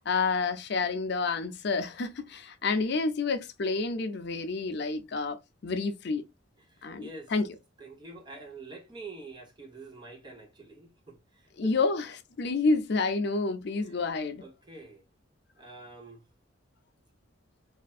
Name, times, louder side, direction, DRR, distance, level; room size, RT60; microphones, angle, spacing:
voice 1, 0.0-6.3 6.8-7.5 11.6-14.4, left 3 dB, 55° left, 0.5 m, -29 dB
voice 2, 6.6-7.3 7.8-11.8 13.8-14.0 14.4-15.0 15.6-16.3, right 3 dB, 20° right, 0.9 m, -46 dB
4.3 x 2.5 x 2.4 m
head